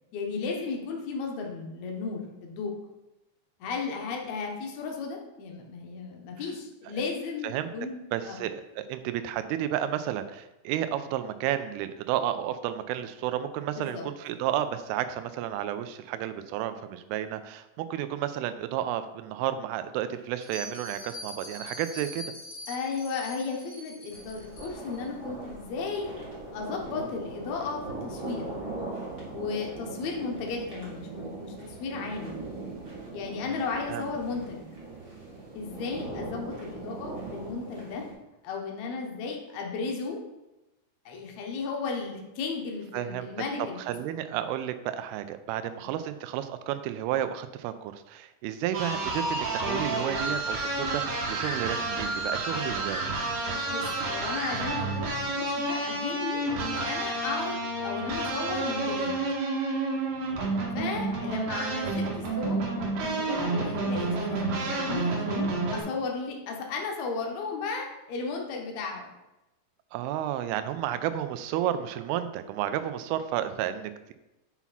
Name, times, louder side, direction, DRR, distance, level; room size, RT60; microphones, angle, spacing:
voice 1, 0.1-2.7 3.6-8.4 13.8-14.0 22.7-26.1 26.5-28.5 29.3-32.4 33.1-34.7 35.5-38.1 38.4-40.2 41.1-43.8 45.8-45.9 53.7-59.1 60.7-69.1, left 4 dB, 80° left, 0 dB, 1.6 m, -35 dB
voice 2, 8.1-22.3 33.4-34.1 42.9-43.3 43.9-53.1 61.2-61.4 69.9-74.1, right 11 dB, 85° right, 11 dB, 2.4 m, -32 dB
Bell, 20.4-25.0, left 1 dB, 55° left, 2.0 m, -43 dB
sound 1, 24.1-38.1, right 2 dB, 35° right, 1.1 m, -40 dB
sound 2, 48.7-65.8, right 2 dB, 65° right, 2.6 m, -30 dB
5.9 x 5.7 x 4.0 m, 0.97 s
omnidirectional pair, 4.7 m